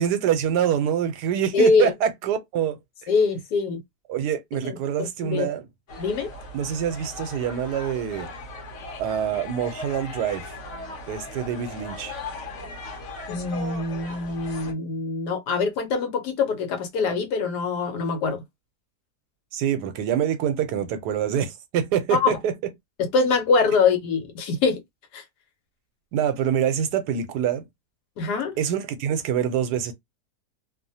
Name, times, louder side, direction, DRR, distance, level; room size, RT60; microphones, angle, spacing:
voice 1, 0.0-2.8 4.1-5.6 6.5-8.3 9.0-10.5 11.1-12.1 19.5-22.5 26.1-27.6 28.6-29.9, right 9 dB, 80° right, 1.2 m, -25 dB
voice 2, 1.5-1.9 3.1-3.8 4.6-5.5 6.0-6.3 13.3-18.4 22.1-22.4 23.0-24.8 25.1-25.2 28.2-28.6, left 4 dB, 80° left, 1.3 m, -23 dB
sound 1, 5.9-14.7, left 2 dB, 55° left, 1.0 m, -38 dB
2.9 x 2.0 x 2.7 m
omnidirectional pair, 1.7 m